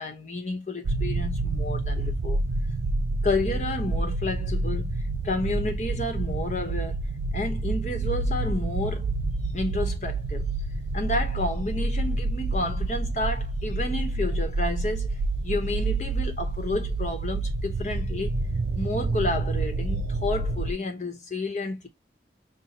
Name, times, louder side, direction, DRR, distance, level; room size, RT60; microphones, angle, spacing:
voice 1, 0.0-2.4 3.2-7.0 7.3-9.1 9.5-10.5 10.9-15.2 15.4-18.3 18.8-21.9, left 2 dB, 40° left, 0.9 m, -30 dB
sound 1, 0.8-20.7, right 2 dB, 80° right, 0.4 m, -28 dB
5.6 x 2.2 x 2.8 m
head